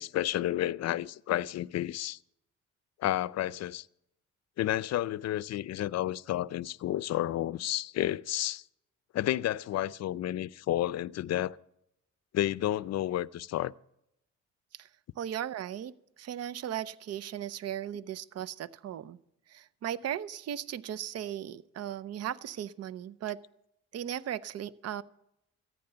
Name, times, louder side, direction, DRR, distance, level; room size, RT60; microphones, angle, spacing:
voice 1, 0.0-2.2 3.0-3.9 4.6-8.6 9.1-11.6 12.3-13.7, left 13 dB, 60° left, 0.5 m, -31 dB
voice 2, 15.2-19.2 19.5-23.4 23.9-25.0, right 10 dB, 55° right, 0.6 m, -37 dB
14.5 x 9.3 x 6.8 m
cardioid pair, 90°, 30 cm